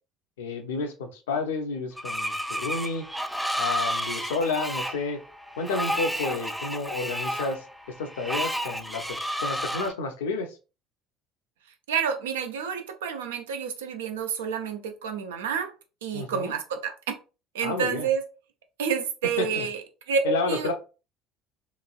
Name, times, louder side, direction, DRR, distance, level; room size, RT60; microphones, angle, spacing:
voice 1, 0.4-3.1 3.6-5.2 5.6-7.6 8.0-10.6 16.1-16.5 17.6-18.1 19.4-19.7 20.2-20.7, left 3 dB, 70° left, 0.5 m, -30 dB
Screech, 2.0-9.9, equal, ahead, 0.3 m, -31 dB
voice 2, 11.9-15.7 16.0-16.9 17.5-18.2 18.8-19.8 20.1-20.7, right 6 dB, 70° right, 0.4 m, -29 dB
3.1 x 2.4 x 2.3 m
figure-of-eight pair, 60°, 0 cm